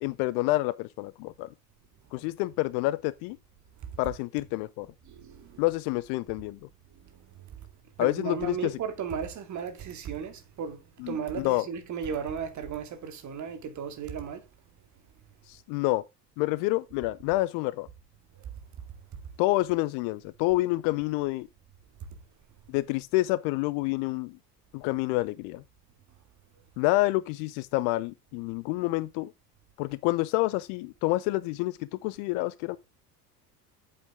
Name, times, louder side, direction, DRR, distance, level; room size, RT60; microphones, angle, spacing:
voice 1, 0.0-1.5 2.1-3.4 4.0-4.9 5.6-6.6 8.0-8.7 11.0-11.6 15.5-16.0 16.4-17.9 19.4-21.5 22.7-24.4 24.7-25.6 26.8-29.3 29.8-32.8, left 19 dB, 45° left, 0.6 m, -28 dB
voice 2, 3.8-4.1 5.0-5.8 6.9-14.5 18.3-18.8 19.1-19.2 26.5-26.6, right 7 dB, 35° right, 2.3 m, -36 dB
8.2 x 8.0 x 3.6 m
figure-of-eight pair, 70°, 48 cm